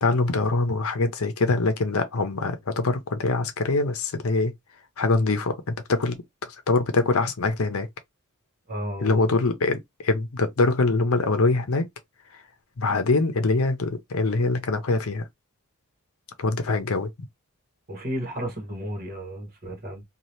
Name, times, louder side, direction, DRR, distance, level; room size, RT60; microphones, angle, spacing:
voice 1, 0.0-4.5 5.0-7.9 9.0-11.9 12.8-15.3 16.4-17.1, left 3 dB, 70° left, 0.7 m, -24 dB
voice 2, 8.7-9.3 17.9-20.0, equal, 45° right, 1.2 m, -33 dB
2.8 x 2.4 x 3.1 m
head